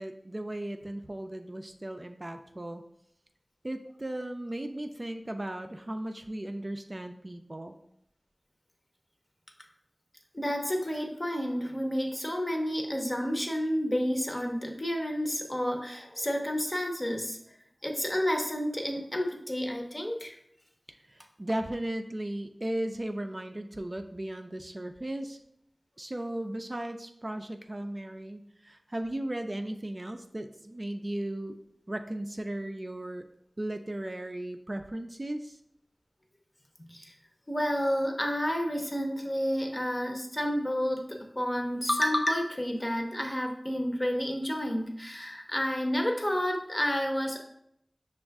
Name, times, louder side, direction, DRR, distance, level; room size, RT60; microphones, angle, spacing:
voice 1, 0.0-2.8 3.6-7.8 20.9-25.4 26.0-31.6 31.9-33.2 33.6-35.6, right 1 dB, 40° right, 6 dB, 0.3 m, -36 dB
voice 2, 10.3-17.4 17.8-20.4 36.9-37.1 37.5-47.4, equal, 30° left, 2 dB, 0.8 m, -30 dB
6.1 x 2.4 x 3.4 m, 0.74 s
wide cardioid pair, 55°, 0 cm